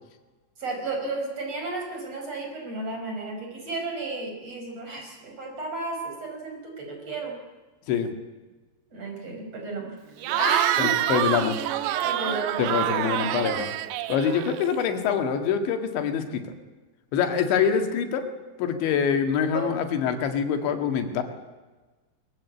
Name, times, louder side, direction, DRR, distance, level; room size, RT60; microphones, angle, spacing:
voice 1, 0.6-7.4 8.9-11.2 11.7-13.2 19.5-19.7, right 2 dB, 35° right, 2 dB, 6.0 m, -33 dB
Cheering / Crowd, 10.2-14.8, right 12 dB, 80° right, 3.1 m, -26 dB
voice 2, 10.8-11.6 12.6-13.7 14.1-16.5 17.1-18.3 18.6-21.2, left 7 dB, 80° left, 6 dB, 4.2 m, -25 dB
22.0 x 21.5 x 8.4 m, 1.3 s
omnidirectional pair, 5.2 m